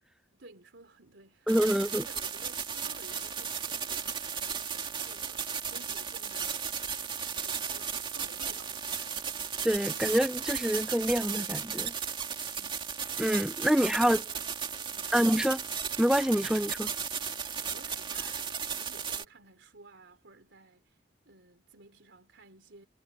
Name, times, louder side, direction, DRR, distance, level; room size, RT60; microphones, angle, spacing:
voice 1, 0.3-6.7 7.4-9.2 12.5-12.9 13.7-15.4 17.6-22.9, right 3 dB, 80° right, 3.3 m, -55 dB
voice 2, 1.5-2.1 9.6-11.9 13.2-14.2 15.1-15.6 16.0-16.9, equal, 5° right, 0.6 m, -26 dB
sound 1, 1.5-19.2, right 7 dB, 25° right, 2.3 m, -35 dB
head